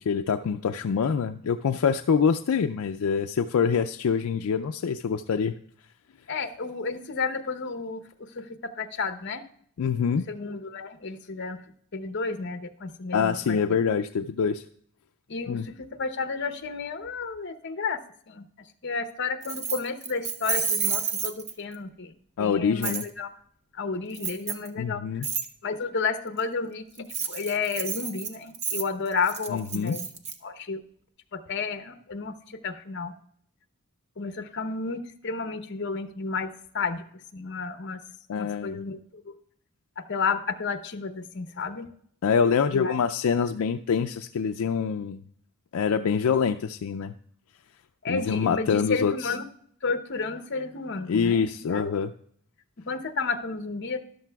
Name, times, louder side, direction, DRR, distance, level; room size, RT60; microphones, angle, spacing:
voice 1, 0.1-5.5 9.8-10.3 13.1-14.6 15.5-15.7 22.4-23.0 24.8-25.3 29.5-30.0 38.3-38.8 42.2-45.2 45.7-47.1 48.1-49.3 51.1-52.1, left 6 dB, 75° left, 8 dB, 0.4 m, -25 dB
voice 2, 6.3-8.0 8.3-9.4 10.3-11.6 11.9-13.6 15.3-18.0 18.3-18.5 18.8-23.3 23.7-25.3 25.6-30.1 30.4-30.8 31.3-33.1 34.2-37.0 37.3-38.0 38.4-39.3 40.0-41.9 42.7-43.0 48.0-49.4 49.8-52.1 52.9-54.1, left 4 dB, 50° left, 8 dB, 0.8 m, -32 dB
Keys jangling, 19.4-21.8 22.8-23.1 24.1-24.7 25.2-25.5 27.0-30.3, right 6 dB, 30° right, 0.7 m, -30 dB
13.5 x 11.5 x 2.3 m, 0.63 s
head